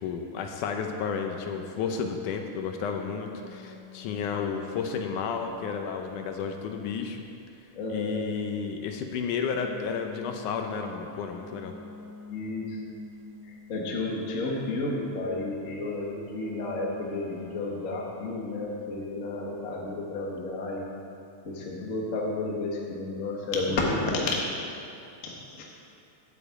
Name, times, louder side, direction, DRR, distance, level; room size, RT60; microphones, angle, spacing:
voice 1, 0.0-7.2 7.9-11.7, left 6 dB, 75° left, 4 dB, 2.1 m, -32 dB
sound 1, 3.3-7.1 9.4-13.8 15.7-19.5, left 3 dB, 15° left, 1.8 m, -48 dB
voice 2, 7.7-8.2 12.3-12.8 13.4-20.9 21.4-24.4 25.2-25.7, left 2 dB, 50° left, -2 dB, 0.9 m, -31 dB
8.4 x 7.2 x 8.3 m, 2.5 s
omnidirectional pair, 3.8 m